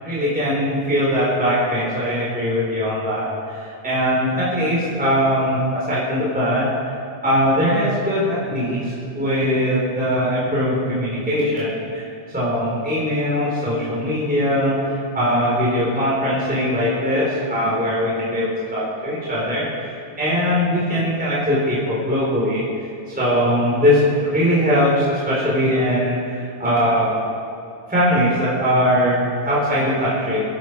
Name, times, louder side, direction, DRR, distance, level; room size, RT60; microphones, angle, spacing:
voice 1, 0.0-6.7 7.2-12.0 12.3-19.9 20.2-22.6 23.1-27.3 27.9-30.4, equal, 5° right, -7 dB, 4.2 m, -21 dB
24.5 x 11.5 x 4.8 m, 2.6 s
omnidirectional pair, 3.4 m